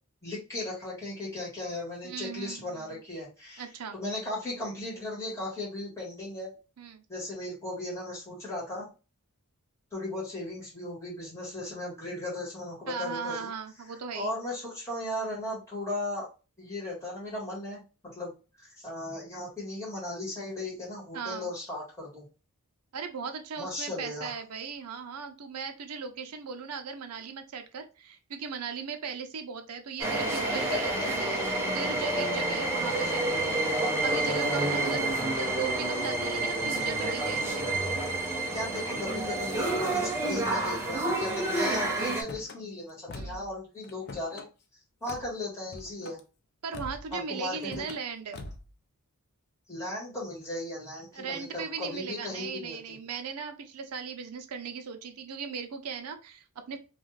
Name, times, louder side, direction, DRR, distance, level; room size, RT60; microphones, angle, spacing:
voice 1, 0.2-3.6 3.9-6.5 7.1-8.9 9.9-13.5 14.1-16.3 16.6-22.2 23.6-24.3 38.5-44.5 45.0-46.2 47.1-47.9 49.7-52.8, left 1 dB, 15° left, -5 dB, 1.3 m, -36 dB
voice 2, 2.0-3.0 3.6-4.0 6.8-7.0 12.9-14.3 21.1-21.5 22.9-37.6 43.1-43.4 46.6-48.4 51.1-56.8, right 5 dB, 80° right, 7 dB, 0.5 m, -38 dB
sound 1, 30.0-42.2, right 2 dB, 10° right, 0.5 m, -29 dB
Car / Slam, 42.1-42.6 43.1-43.5 43.8-44.5 45.1-45.3 45.7-46.2 46.7-47.1 47.6-48.0 48.3-48.7, left 2 dB, 45° left, 0.4 m, -43 dB
2.4 x 2.3 x 3.1 m, 0.32 s
head